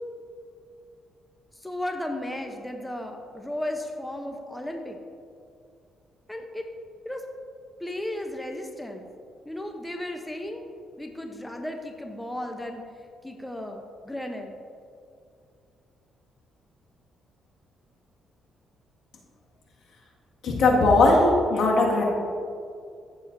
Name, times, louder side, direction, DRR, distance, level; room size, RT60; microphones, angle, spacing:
voice 1, 1.5-5.0 6.3-6.7 7.0-7.2 7.8-9.1 9.4-10.6 11.0-12.8 13.2-14.6, left 1 dB, 10° left, 3 dB, 0.8 m, -34 dB
voice 2, 20.4-22.0, left 2 dB, 75° left, -2 dB, 1.8 m, -19 dB
14.5 x 7.2 x 2.7 m, 2.4 s
cardioid pair, 90°, 0 cm